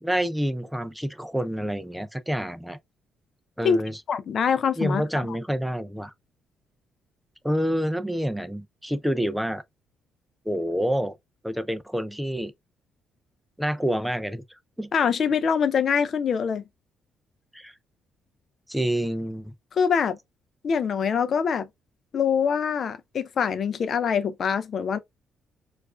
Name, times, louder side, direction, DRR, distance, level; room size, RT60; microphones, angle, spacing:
voice 1, 0.0-2.8 3.6-4.0 4.8-6.1 7.4-9.6 10.5-11.2 11.4-12.5 13.6-14.4 14.8-14.9 17.5-17.7 18.7-19.5, equal, 5° right, 0.4 m, -27 dB
voice 2, 4.1-5.0 14.9-16.6 19.7-20.2 20.6-21.7 22.1-25.0, left 6 dB, 50° left, 0.5 m, -24 dB
4.5 x 2.5 x 2.3 m
cardioid pair, 105°, 0 cm